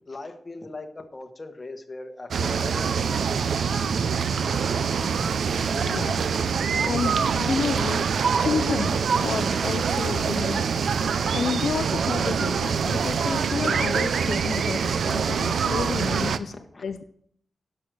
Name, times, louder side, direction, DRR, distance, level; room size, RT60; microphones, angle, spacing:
voice 1, 0.1-3.4 15.8-15.9 16.2-16.9, left 2 dB, 25° left, 5 dB, 1.2 m, -40 dB
sound 1, 2.3-16.4, right 6 dB, 85° right, 0.5 m, -25 dB
voice 2, 5.7-6.5 6.9-8.0 8.4-10.7 11.3-16.5 16.8-17.0, left 6 dB, 70° left, 9 dB, 0.5 m, -30 dB
11.0 x 6.6 x 6.1 m, 0.65 s
wide cardioid pair, 165°, 0 cm